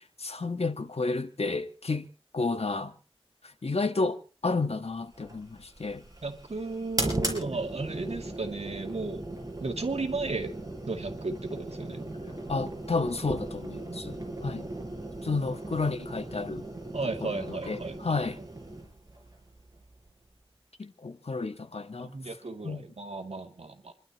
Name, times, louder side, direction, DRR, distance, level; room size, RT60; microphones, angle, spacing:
voice 1, 0.0-2.1 2.3-2.9 3.6-6.0 12.5-14.7 15.2-16.7 17.0-18.4 20.8-22.1 22.6-22.8, left 3 dB, 75° left, 1.5 m, -31 dB
sound 1, 5.1-20.4, right 1 dB, 35° right, 6.1 m, -38 dB
voice 2, 6.2-9.2 9.6-10.5 10.9-12.0 16.9-18.0 22.0-23.9, right 3 dB, 85° right, 2.3 m, -34 dB
28.5 x 12.0 x 3.0 m
wide cardioid pair, 60°, 11 cm